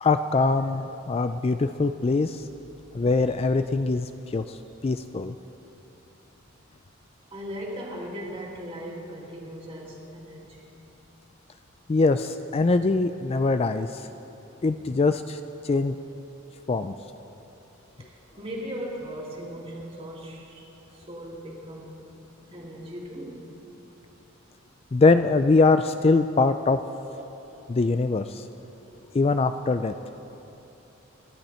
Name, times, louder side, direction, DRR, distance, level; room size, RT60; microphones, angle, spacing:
voice 1, 0.0-2.5 2.9-4.6 4.8-5.3 11.9-14.1 14.6-16.0 16.7-16.9 24.9-26.8 27.7-28.5 29.1-29.9, left 3 dB, 30° left, 9 dB, 0.4 m, -23 dB
voice 2, 7.3-10.7 18.0-20.7 20.9-22.1 22.5-23.5 27.1-27.5, equal, 30° right, -2 dB, 2.6 m, -38 dB
28.0 x 12.0 x 4.4 m, 3.0 s
head